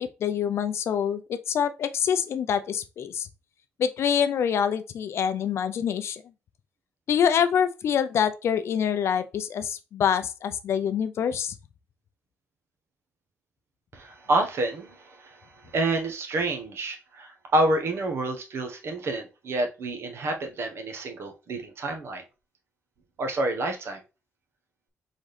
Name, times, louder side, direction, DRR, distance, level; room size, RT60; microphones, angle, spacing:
voice 1, 0.0-3.3 3.8-6.2 7.1-11.5, left 8 dB, 65° left, 0.5 m, -26 dB
voice 2, 13.9-22.2 23.2-24.0, right 2 dB, 60° right, 1.2 m, -28 dB
4.2 x 3.7 x 3.3 m
cardioid pair, 80°, 5 cm